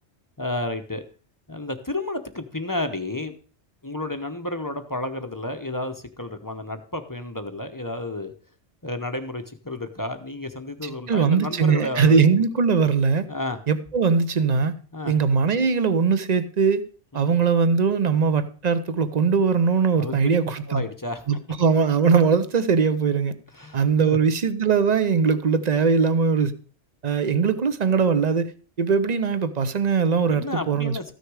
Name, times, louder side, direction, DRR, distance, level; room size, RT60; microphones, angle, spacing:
voice 1, 0.4-1.0 1.5-3.4 3.8-8.3 8.8-12.2 13.3-13.6 14.9-15.1 17.1-17.3 19.9-20.4 20.7-21.2 23.5-24.2 30.3-31.1, left 2 dB, 20° left, 0.7 m, -31 dB
voice 2, 10.8-13.3 13.7-14.7 15.1-16.8 17.1-20.8 21.3-23.3 23.7-26.5 27.0-28.5 28.8-31.1, right 5 dB, 40° right, 0.8 m, -21 dB
14.0 x 6.6 x 4.8 m
omnidirectional pair, 1.2 m